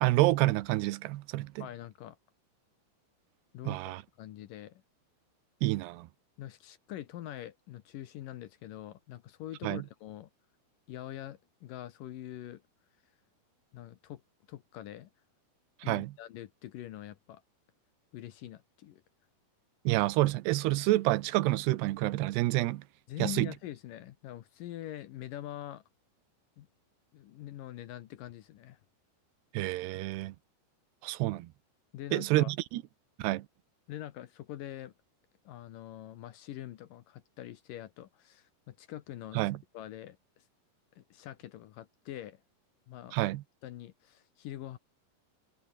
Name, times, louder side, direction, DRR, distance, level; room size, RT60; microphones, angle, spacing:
voice 1, 0.0-1.7 3.7-4.0 5.6-6.1 9.6-9.8 15.9-16.1 19.9-22.8 23.2-23.5 29.5-30.3 31.0-31.5 32.1-32.8 33.2-33.4 39.4-39.6 43.1-43.4, right 17 dB, 85° right, 3.0 m, -28 dB
voice 2, 1.6-2.2 3.5-4.8 6.4-10.3 10.9-12.6 13.7-14.2 14.5-15.1 15.8-17.4 18.1-19.0 23.1-25.8 26.6-26.7 27.1-28.8 31.9-32.5 33.9-34.9 35.5-40.2 41.0-42.4 42.9-43.2 43.6-44.8, left 13 dB, 70° left, 2.4 m, -44 dB
omnidirectional pair, 4.7 m